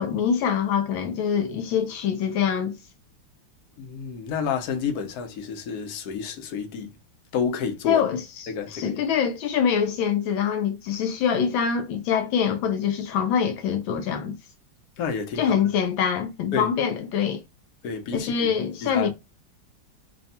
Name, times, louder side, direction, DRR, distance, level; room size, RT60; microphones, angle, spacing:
voice 1, 0.0-2.7 7.9-14.3 15.4-17.4 18.1-19.1, left 7 dB, 80° left, 1.3 m, -24 dB
voice 2, 3.8-6.9 7.3-8.0 8.5-9.0 15.0-15.6 16.5-16.7 17.8-18.5 18.8-19.1, left 6 dB, 60° left, 1.1 m, -30 dB
3.4 x 2.3 x 4.0 m
omnidirectional pair, 2.2 m